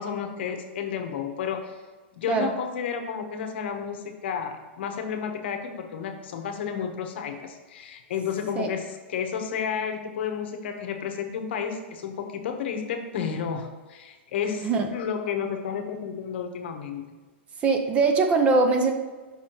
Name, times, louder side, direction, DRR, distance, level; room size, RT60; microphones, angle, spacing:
voice 1, 0.0-1.8 2.2-17.0, left 7 dB, 65° left, 4 dB, 0.9 m, -31 dB
voice 2, 17.6-18.9, right 4 dB, 20° right, 5 dB, 0.5 m, -22 dB
6.2 x 5.6 x 3.0 m, 1.3 s
supercardioid pair, 160°, 6 cm